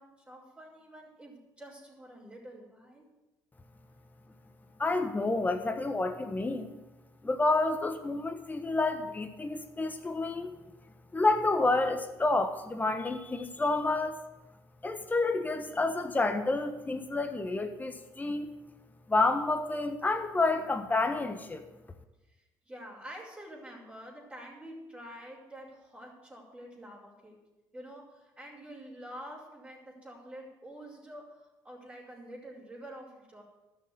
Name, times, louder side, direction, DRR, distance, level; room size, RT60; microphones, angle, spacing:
voice 1, 0.0-3.1 22.3-27.4 27.7-33.4, equal, 15° right, -5 dB, 5.1 m, -47 dB
voice 2, 4.8-6.8 7.2-10.6 11.1-14.2 14.8-18.5 19.1-21.6, left 2 dB, 20° left, 6 dB, 1.3 m, -29 dB
12.0 x 7.0 x 9.3 m, 1.0 s
supercardioid pair, 70°, 9 cm